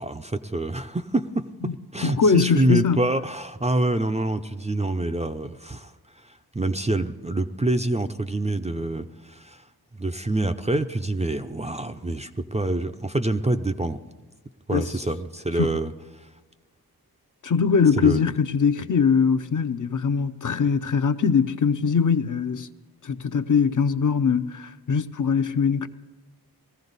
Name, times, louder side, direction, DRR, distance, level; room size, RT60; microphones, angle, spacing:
voice 1, 0.0-1.5 1.9-9.6 9.9-14.0 14.7-16.3 18.0-18.3, right 2 dB, 20° right, 0.5 m, -26 dB
voice 2, 2.0-3.1 14.7-14.9 15.6-15.8 17.4-22.7 23.0-25.9, left 6 dB, 55° left, 0.6 m, -22 dB
20.0 x 14.5 x 4.0 m
wide cardioid pair, 110°, 38 cm